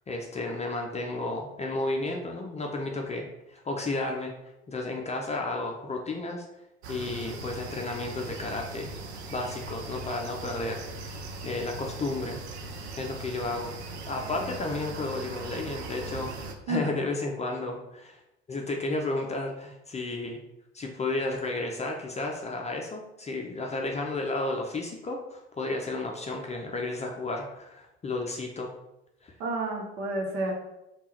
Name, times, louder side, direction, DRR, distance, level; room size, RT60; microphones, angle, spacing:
voice 1, 0.1-4.3 4.7-6.5 6.9-8.9 9.3-10.8 11.4-12.4 13.0-13.7 14.1-18.2 18.5-20.4 20.7-28.7 29.2-29.3, left 2 dB, 20° left, 1 dB, 0.5 m, -32 dB
sound 1, 6.8-16.5, right 2 dB, 80° right, 0.5 m, -39 dB
voice 2, 29.4-30.5, right 2 dB, 60° right, 0 dB, 1.0 m, -30 dB
3.6 x 2.4 x 4.3 m, 0.92 s
figure-of-eight pair, 55°, 32 cm